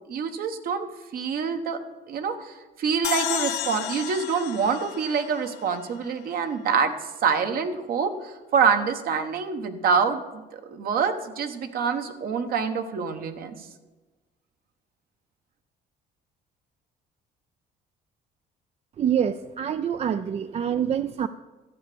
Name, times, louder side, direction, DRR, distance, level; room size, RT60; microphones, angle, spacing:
voice 1, 0.1-0.9 1.1-1.8 2.1-6.9 7.2-10.2 10.5-13.5, right 6 dB, 60° right, 8 dB, 1.3 m, -26 dB
sound 1, 3.0-6.4, left 14 dB, 85° left, 0.6 m, -33 dB
voice 2, 19.0-21.3, right 8 dB, 40° right, 12 dB, 0.4 m, -26 dB
12.5 x 8.1 x 6.9 m, 1.2 s
cardioid pair, 110°, 17 cm